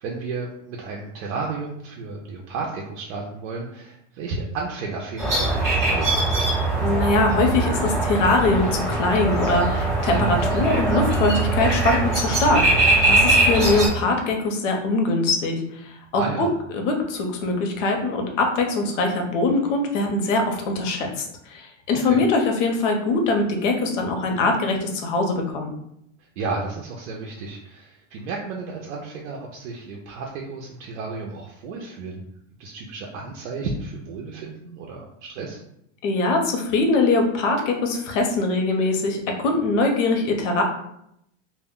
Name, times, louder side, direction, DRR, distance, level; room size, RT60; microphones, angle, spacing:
voice 1, 0.0-6.1 16.1-16.5 22.0-22.2 26.2-32.2 32.6-35.6, right 4 dB, 75° right, -1 dB, 0.5 m, -32 dB
sound 1, 5.2-13.9, right 2 dB, 10° right, 0.4 m, -21 dB
voice 2, 6.8-16.5 16.7-25.7 36.0-40.6, left 2 dB, 75° left, 3 dB, 0.7 m, -22 dB
2.1 x 2.1 x 3.5 m, 0.76 s
supercardioid pair, 175°, 37 cm